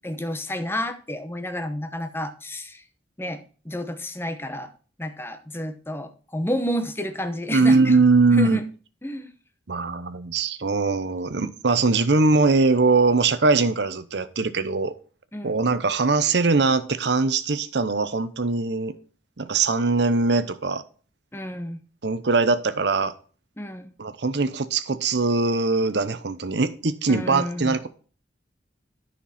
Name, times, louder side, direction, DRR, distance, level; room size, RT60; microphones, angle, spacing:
voice 1, 0.0-2.8 3.2-4.7 5.0-8.0 8.3-8.6 9.0-9.3 15.3-15.6 21.3-21.8 23.6-23.9 27.1-27.8, equal, 15° left, 0.9 m, -30 dB
voice 2, 7.5-8.6 9.7-14.9 15.4-18.9 19.4-20.8 22.0-23.1 24.0-27.9, right 3 dB, 65° right, 0.8 m, -21 dB
10.0 x 5.9 x 4.3 m
head